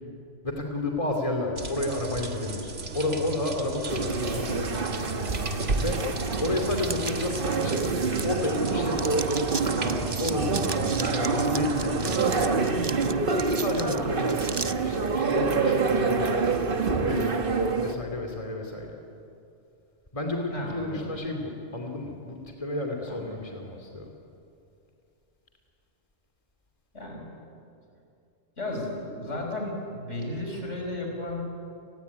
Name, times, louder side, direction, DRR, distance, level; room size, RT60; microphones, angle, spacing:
voice 1, 0.4-4.9 5.4-6.0 6.4-8.0 8.2-9.4 9.8-10.7 11.0-13.2 13.5-16.4 16.9-18.9 20.1-24.1, left 2 dB, 30° left, 2 dB, 2.8 m, -32 dB
sound 1, 1.6-12.5, right 2 dB, 85° right, 2.2 m, -36 dB
sound 2, 3.9-17.9, right 4 dB, 50° right, 1.5 m, -27 dB
sound 3, 6.8-8.7 9.0-14.7, right 4 dB, 25° right, 0.6 m, -37 dB
voice 2, 20.5-21.1 23.1-23.3 26.9-27.3 28.6-31.4, left 1 dB, 90° left, 1 dB, 5.9 m, -34 dB
29.5 x 20.0 x 9.6 m, 2.6 s
omnidirectional pair, 1.2 m